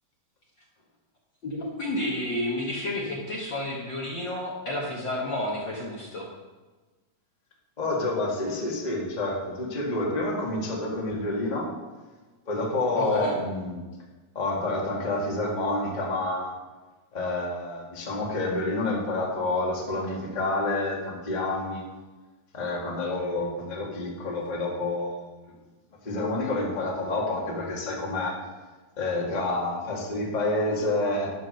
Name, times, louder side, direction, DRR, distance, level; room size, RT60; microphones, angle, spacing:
voice 1, 1.4-6.3 13.0-13.4, left 1 dB, 50° left, -3 dB, 1.6 m, -31 dB
voice 2, 7.8-11.7 12.4-13.8 14.3-16.6 17.1-21.8 22.5-25.3 26.0-28.4 29.0-31.3, left 2 dB, 20° left, -2 dB, 1.4 m, -28 dB
11.5 x 6.0 x 6.4 m, 1.3 s
omnidirectional pair, 3.4 m